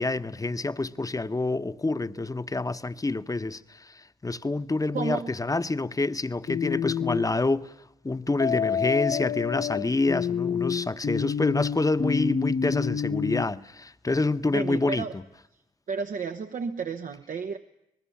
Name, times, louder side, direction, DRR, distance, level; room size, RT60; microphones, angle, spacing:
voice 1, 0.0-7.7 8.0-15.2, left 2 dB, 25° left, 1.0 m, -27 dB
voice 2, 4.9-5.3 14.5-15.1 15.9-17.6, right 5 dB, 65° right, 1.0 m, -32 dB
sound 1, 6.5-7.3 8.4-13.4, left 7 dB, 50° left, 0.9 m, -28 dB
25.5 x 20.0 x 7.2 m
supercardioid pair, 40°, 14 cm